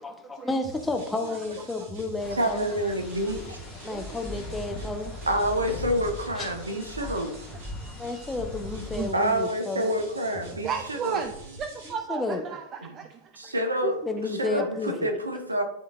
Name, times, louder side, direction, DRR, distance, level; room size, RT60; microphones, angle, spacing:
voice 1, 0.0-2.7 3.8-5.1 7.8-9.9 11.8-12.4 13.4-13.5 14.1-15.1, left 2 dB, 10° left, 4 dB, 0.7 m, -32 dB
sound 1, 0.6-11.9, right 2 dB, 55° right, 2.2 m, -45 dB
sound 2, 2.2-9.1, left 2 dB, 25° left, 1.6 m, -40 dB
voice 2, 2.3-3.6 5.3-7.3 9.1-11.2 12.8-12.9 13.4-14.0 14.2-15.6, equal, 80° right, 5 dB, 0.9 m, -28 dB
voice 3, 4.7-5.2 7.0-7.2 8.9-9.1 9.8-9.9 10.6-13.3 13.8-14.1 14.6-14.7, right 7 dB, 30° right, 8 dB, 0.4 m, -34 dB
11.0 x 3.8 x 2.3 m, 0.77 s
figure-of-eight pair, 90°, 0 cm